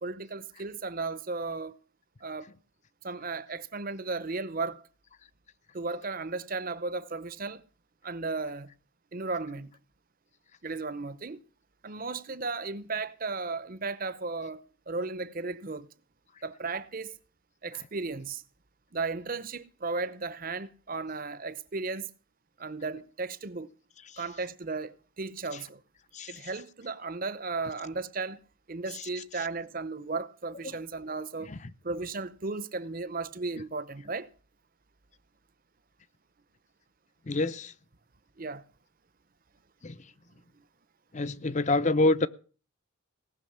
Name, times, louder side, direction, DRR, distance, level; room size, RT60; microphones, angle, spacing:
voice 1, 0.0-1.8 2.2-2.5 3.0-4.8 5.7-7.6 8.0-8.7 9.1-9.7 10.6-11.4 11.8-14.6 14.9-15.9 16.4-17.1 17.6-18.4 18.9-22.1 22.6-23.7 24.2-25.8 26.3-28.4 28.7-31.5 31.8-34.3 38.4-38.6, right 3 dB, 40° right, 0.8 m, -35 dB
voice 2, 37.3-37.7 39.8-39.9 41.1-42.3, left 2 dB, 35° left, 0.6 m, -27 dB
18.0 x 6.3 x 8.7 m
head